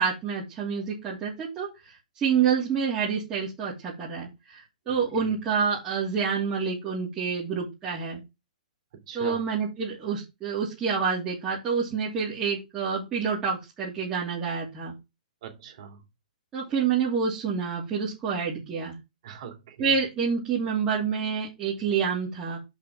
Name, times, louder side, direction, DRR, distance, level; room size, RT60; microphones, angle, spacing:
voice 1, 0.0-8.2 9.1-14.9 16.5-19.0 19.8-22.6, right 6 dB, 20° right, -7 dB, 2.8 m, -28 dB
voice 2, 4.9-5.3 9.1-9.4 15.4-16.0 19.2-19.9, right 9 dB, 50° right, 5 dB, 3.0 m, -41 dB
6.0 x 5.5 x 6.2 m, 0.23 s
hypercardioid pair, 155°, 4 cm